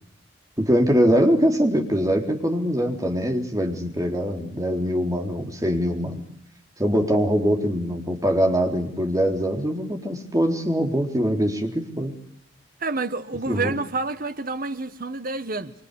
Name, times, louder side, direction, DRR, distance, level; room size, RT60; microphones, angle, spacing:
voice 1, 0.6-6.2 6.8-12.1 13.5-13.7, equal, 20° right, 3.9 m, -23 dB
voice 2, 12.8-15.7, right 3 dB, 50° right, 1.5 m, -28 dB
26.5 x 25.0 x 8.4 m
head